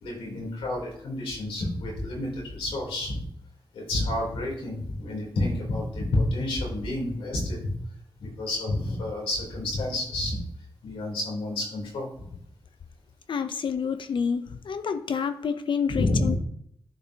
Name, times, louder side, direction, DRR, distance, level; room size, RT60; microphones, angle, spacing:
voice 1, 0.0-3.2 3.7-7.7 8.2-10.4 10.8-12.3 15.9-16.4, left 1 dB, 90° left, -2 dB, 3.3 m, -29 dB
voice 2, 13.3-16.4, left 6 dB, 65° left, 9 dB, 0.6 m, -28 dB
9.9 x 5.8 x 2.8 m, 0.70 s
cardioid pair, 50°, 9 cm